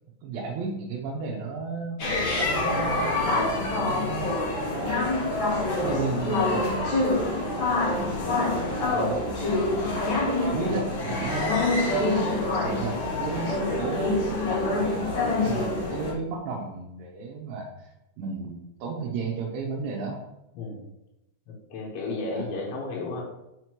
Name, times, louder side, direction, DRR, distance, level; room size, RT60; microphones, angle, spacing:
voice 1, 0.2-3.1 3.5-5.2 5.8-7.0 7.9-17.9 18.2-20.2 22.3-22.5, right 4 dB, 80° right, -2 dB, 3.1 m, -34 dB
sound 1, 2.0-16.1, left 2 dB, 40° left, 1.9 m, -26 dB
voice 2, 10.6-11.4 20.6-20.8 21.5-23.2, left 3 dB, 85° left, -3 dB, 3.5 m, -33 dB
7.6 x 5.7 x 3.0 m, 0.90 s
omnidirectional pair, 5.2 m